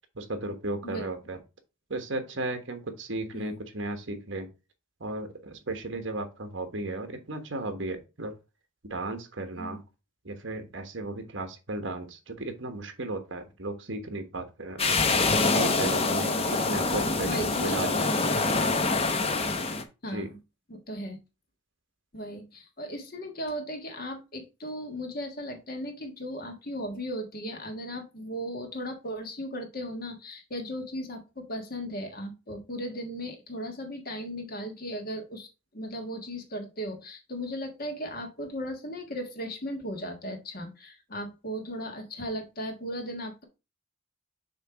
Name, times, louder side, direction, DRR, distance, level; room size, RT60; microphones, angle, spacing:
voice 1, 0.1-1.4 1.9-4.5 5.0-8.3 8.9-9.8 10.2-15.2 15.4-18.1 20.1-20.3, right 2 dB, 60° right, 7 dB, 1.2 m, -35 dB
sound 1, 14.8-19.8, left 3 dB, 30° left, 0.7 m, -25 dB
voice 2, 16.3-16.6 17.2-17.9 20.0-20.4 20.7-21.2 22.1-35.5 35.7-43.4, equal, 45° left, 4 dB, 1.4 m, -36 dB
6.8 x 3.2 x 4.7 m, 0.28 s
head